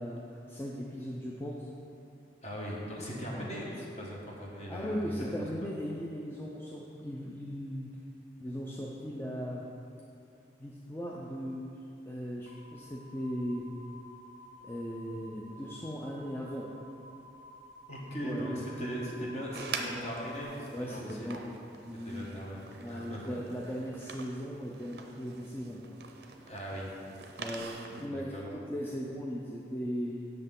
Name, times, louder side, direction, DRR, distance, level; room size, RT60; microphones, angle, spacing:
voice 1, 0.0-1.7 3.4-3.5 4.7-7.9 8.4-9.6 10.6-11.7 12.1-13.6 14.6-16.7 18.2-18.9 20.7-21.4 21.8-22.3 22.8-25.8 27.4-30.2, equal, 10° left, -4 dB, 0.4 m, -38 dB
voice 2, 2.4-5.4 17.9-21.4 22.0-23.4 26.4-26.9 28.1-28.5, equal, 35° left, -3 dB, 1.2 m, -39 dB
sound 1, 12.5-20.4, left 1 dB, 85° left, 0.5 m, -53 dB
sound 2, 19.5-28.1, right 4 dB, 60° right, 0.5 m, -45 dB
7.9 x 6.5 x 3.7 m, 2.7 s
head